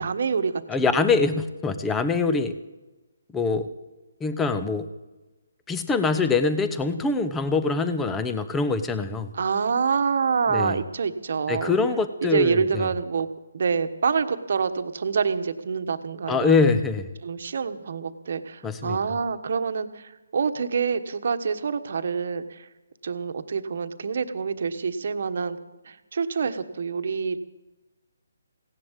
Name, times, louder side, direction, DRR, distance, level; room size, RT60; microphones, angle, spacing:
voice 1, 0.0-1.1 9.3-11.7 12.2-13.3 13.5-16.6 17.2-22.7 23.0-25.6 25.8-27.4, right 5 dB, 60° right, 9 dB, 1.3 m, -26 dB
voice 2, 0.7-2.6 3.3-3.7 4.2-4.9 5.7-9.3 10.5-10.8 11.5-12.9 16.3-17.1 18.6-19.0, left 4 dB, 10° left, 10 dB, 1.0 m, -24 dB
17.0 x 11.0 x 7.5 m, 1.1 s
hypercardioid pair, 150°, 0 cm